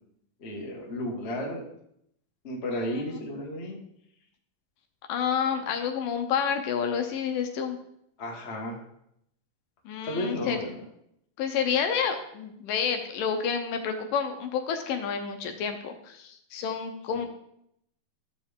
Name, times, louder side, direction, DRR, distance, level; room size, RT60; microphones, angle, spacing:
voice 1, 0.4-1.6 2.4-3.8 8.2-8.8 10.0-10.7, left 1 dB, 55° left, -2 dB, 0.7 m, -33 dB
voice 2, 2.7-3.0 5.1-7.8 9.9-10.8 11.4-17.3, left 7 dB, 75° left, 6 dB, 2.2 m, -29 dB
12.5 x 6.8 x 3.6 m, 0.75 s
omnidirectional pair, 4.3 m